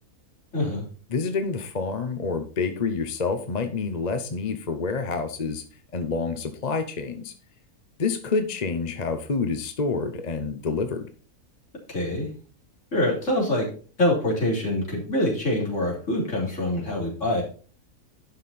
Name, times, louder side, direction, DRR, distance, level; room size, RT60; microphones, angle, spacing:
voice 1, 0.5-0.8 11.9-12.3 12.9-13.7 14.0-17.4, left 1 dB, 50° left, -2 dB, 3.7 m, -25 dB
voice 2, 1.1-5.6 5.9-7.3 8.0-11.1, left 4 dB, 35° left, 7 dB, 0.8 m, -28 dB
11.5 x 5.6 x 4.2 m, 0.39 s
omnidirectional pair, 1.6 m